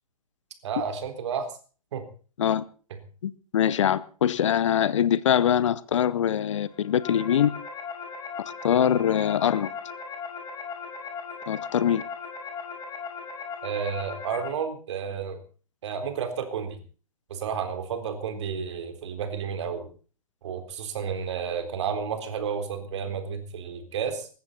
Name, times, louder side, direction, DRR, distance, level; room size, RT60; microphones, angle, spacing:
voice 1, 0.6-1.5 1.9-2.0 13.6-15.4 15.8-16.8 17.3-19.9 20.4-24.3, right 7 dB, 50° right, 3.8 m, -31 dB
voice 2, 3.2-7.5 8.6-9.7 11.5-12.0, left 9 dB, 55° left, 0.9 m, -23 dB
sound 1, 6.7-14.5, left 5 dB, 20° left, 5.9 m, -38 dB
20.0 x 15.0 x 4.2 m
figure-of-eight pair, 120°, 19 cm